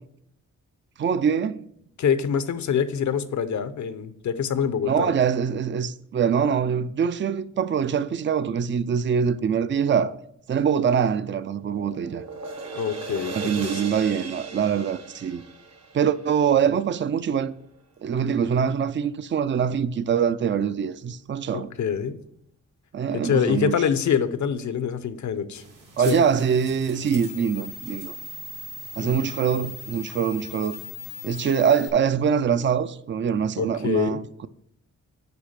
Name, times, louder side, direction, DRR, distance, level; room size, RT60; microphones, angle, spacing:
voice 1, 1.0-1.7 4.8-10.2 10.5-12.2 13.3-15.4 15.9-17.5 18.0-21.7 22.9-23.7 26.0-28.2 28.9-30.8 31.2-34.5, right 7 dB, 40° right, 0.4 m, -24 dB
voice 2, 2.0-5.1 12.7-13.3 13.6-13.8 21.5-22.2 23.1-25.6 26.1-26.2 29.0-29.2 33.6-34.2, left 7 dB, 65° left, 0.7 m, -25 dB
sound 1, 11.2-17.2, right 3 dB, 55° right, 1.1 m, -38 dB
sound 2, 25.6-31.9, left 3 dB, 80° right, 2.2 m, -40 dB
6.8 x 5.0 x 6.5 m
cardioid pair, 85°, 31 cm